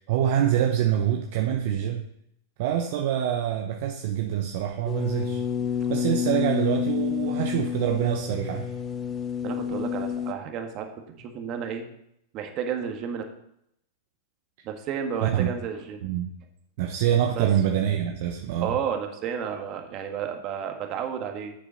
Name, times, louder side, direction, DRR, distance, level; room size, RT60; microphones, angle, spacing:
voice 1, 0.0-2.1 2.6-5.4 5.9-8.7 15.2-15.5 16.0-16.3 16.8-18.8, right 10 dB, 60° right, 4 dB, 0.9 m, -25 dB
sound 1, 4.9-10.3, left 8 dB, 25° left, 0.9 m, -29 dB
voice 2, 9.4-11.9 12.3-13.2 14.6-16.1 17.3-17.5 18.6-21.5, right 7 dB, 40° right, 5 dB, 1.8 m, -32 dB
7.9 x 6.9 x 5.7 m, 0.76 s
hypercardioid pair, 110°, 0 cm